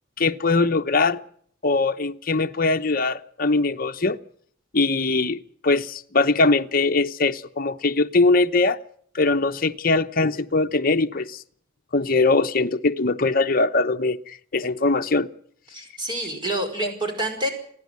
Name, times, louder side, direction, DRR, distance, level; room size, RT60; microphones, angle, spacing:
voice 1, 0.2-1.2 1.6-4.2 4.7-8.8 9.1-11.4 11.9-15.3 16.8-16.9, left 3 dB, 45° left, 7 dB, 0.9 m, -21 dB
voice 2, 15.7-17.5, right 1 dB, 25° right, 5 dB, 5.3 m, -27 dB
28.5 x 10.5 x 9.5 m, 0.62 s
head